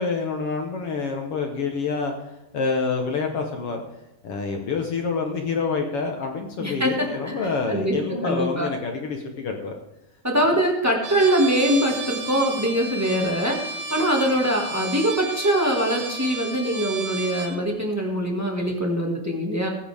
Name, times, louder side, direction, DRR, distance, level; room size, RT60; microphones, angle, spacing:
voice 1, 0.0-2.1 2.5-3.8 4.2-9.8 10.5-10.6, left 4 dB, 60° left, 2 dB, 1.6 m, -27 dB
voice 2, 6.6-8.0 8.2-8.7 10.2-19.7, right 1 dB, 10° right, -1 dB, 0.9 m, -23 dB
Trumpet, 11.0-17.6, right 3 dB, 65° right, 4.0 m, -33 dB
20.0 x 10.0 x 3.6 m, 0.92 s
omnidirectional pair, 4.0 m